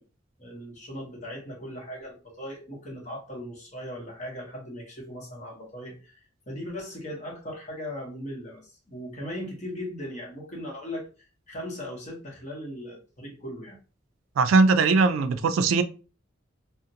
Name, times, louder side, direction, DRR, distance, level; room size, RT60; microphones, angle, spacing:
voice 1, 0.4-11.1 11.5-13.8, equal, 35° left, 0.9 m, -38 dB
voice 2, 14.4-15.8, right 4 dB, 80° right, 0.3 m, -20 dB
2.4 x 2.0 x 2.7 m
head